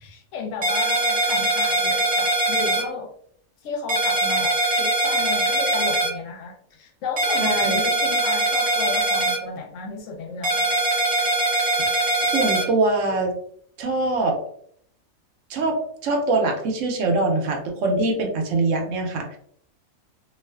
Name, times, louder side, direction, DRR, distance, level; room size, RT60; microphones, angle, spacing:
voice 1, 0.0-3.1 3.6-10.8, left 4 dB, 70° left, 3 dB, 0.8 m, -33 dB
sound 1, 0.6-2.8 3.9-6.1 7.2-9.4 10.4-12.6, right 2 dB, 35° right, 0.6 m, -22 dB
voice 2, 7.4-7.8 11.8-11.9 12.2-13.3 13.8-14.4 15.5-19.4, right 2 dB, 70° right, 2 dB, 0.9 m, -23 dB
2.4 x 2.3 x 2.2 m, 0.64 s
omnidirectional pair, 1.5 m